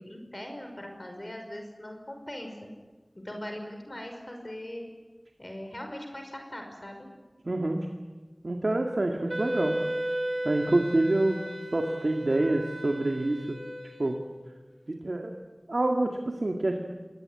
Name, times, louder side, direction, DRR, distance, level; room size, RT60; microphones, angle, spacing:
voice 1, 0.0-2.7 3.1-4.9 5.4-7.1, left 1 dB, 40° left, 3 dB, 5.6 m, -40 dB
voice 2, 7.5-7.9 8.4-9.8 10.4-11.4 11.7-13.6 14.0-14.2 14.9-15.4 15.7-16.8, right 2 dB, 80° right, 2 dB, 2.0 m, -27 dB
Wind instrument woodwind instrument, 9.3-14.5, right 1 dB, 60° right, 2.2 m, -35 dB
26.5 x 19.5 x 9.7 m, 1.3 s
wide cardioid pair, 40°, 0 cm